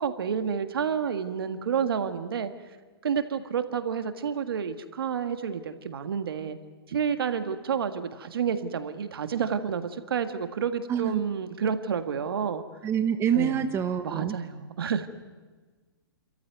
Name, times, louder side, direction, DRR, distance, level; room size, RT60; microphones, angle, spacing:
voice 1, 0.0-2.5 3.0-6.6 6.9-12.6 13.3-13.6 14.0-15.1, right 7 dB, 75° right, 9 dB, 1.7 m, -29 dB
voice 2, 10.9-11.2 12.8-14.4, right 8 dB, 20° right, 8 dB, 1.1 m, -26 dB
29.5 x 14.0 x 9.3 m, 1.4 s
hypercardioid pair, 130°, 13 cm